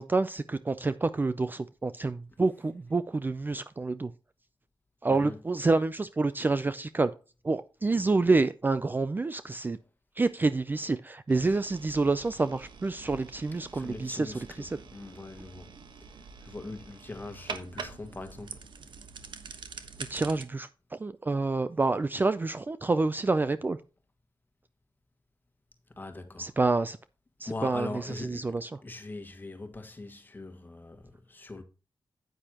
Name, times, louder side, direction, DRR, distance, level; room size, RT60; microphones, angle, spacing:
voice 1, 0.0-4.1 5.0-7.1 7.4-9.8 10.2-14.8 20.1-23.8 26.4-27.0 27.4-28.8, right 3 dB, 25° right, 0.4 m, -28 dB
sound 1, 11.3-20.4, right 5 dB, 80° right, 1.2 m, -45 dB
voice 2, 13.7-14.6 14.9-15.7 16.4-18.6 26.0-26.5 27.4-28.5 28.8-31.6, left 2 dB, 25° left, 1.6 m, -41 dB
9.6 x 9.0 x 2.9 m
wide cardioid pair, 150°, 8 cm